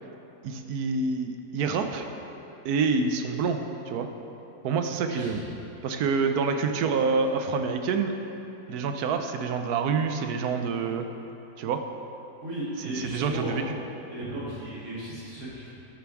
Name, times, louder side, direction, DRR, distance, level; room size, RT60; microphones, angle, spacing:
voice 1, 0.4-2.1 2.6-3.6 3.9-4.1 4.6-5.4 5.8-8.1 8.7-11.1 11.6-11.8 12.9-13.6, right 5 dB, 85° right, 6 dB, 1.2 m, -27 dB
voice 2, 4.9-5.5 5.8-5.9 12.4-13.7 14.1-15.7, right 1 dB, 55° right, -7 dB, 2.5 m, -35 dB
11.0 x 7.0 x 4.7 m, 2.9 s
omnidirectional pair, 1.6 m